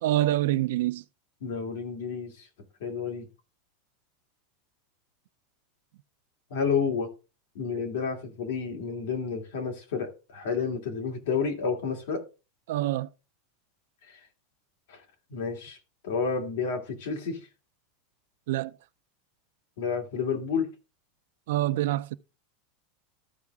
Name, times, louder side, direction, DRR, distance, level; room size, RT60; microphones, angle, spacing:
voice 1, 0.0-1.0 12.7-13.1 18.5-18.7 21.5-22.2, right 15 dB, 65° right, 0.4 m, -26 dB
voice 2, 1.4-2.5 2.8-3.3 6.5-7.1 7.5-12.2 14.0-14.2 14.9-15.0 15.3-15.8 16.0-17.4 19.8-20.7, left 5 dB, 65° left, 2.4 m, -30 dB
13.5 x 4.8 x 3.5 m
supercardioid pair, 175°, 0 cm